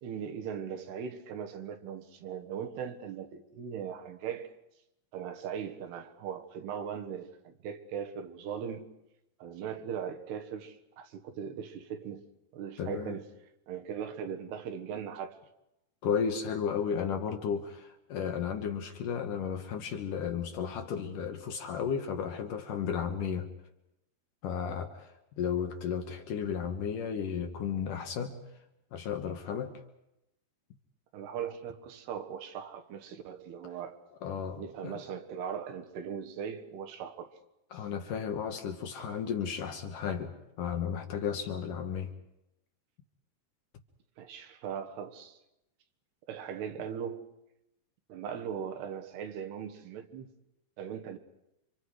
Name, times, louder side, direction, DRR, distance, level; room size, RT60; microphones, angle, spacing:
voice 1, 0.0-4.5 5.1-8.9 9.4-12.2 12.5-13.3 13.7-15.4 31.1-34.0 34.6-37.3 37.7-37.9 39.0-39.2 44.2-45.4 46.3-47.3 48.1-50.3 50.8-51.2, right 8 dB, 80° right, 3.3 m, -39 dB
voice 2, 12.8-13.2 16.0-23.5 24.4-28.4 28.9-29.7 34.2-35.0 37.7-40.3 40.6-42.1, left 7 dB, 65° left, 2.5 m, -34 dB
30.0 x 25.5 x 4.8 m
omnidirectional pair, 4.7 m